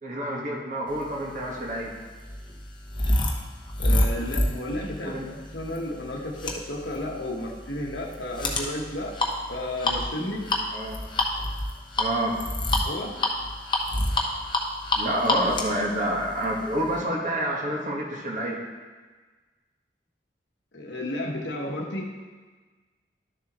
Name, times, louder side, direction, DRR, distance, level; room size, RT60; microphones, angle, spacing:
voice 1, 0.0-1.9 5.0-5.3 10.7-11.0 12.0-12.4 14.9-18.6, right 1 dB, 45° right, -2 dB, 1.5 m, -28 dB
sound 1, 1.3-17.0, left 1 dB, 25° left, 0.9 m, -28 dB
voice 2, 3.8-9.1 9.5-10.4 12.8-13.1 20.7-22.1, left 1 dB, 85° left, 0 dB, 1.3 m, -32 dB
12.0 x 6.9 x 3.1 m, 1.4 s
head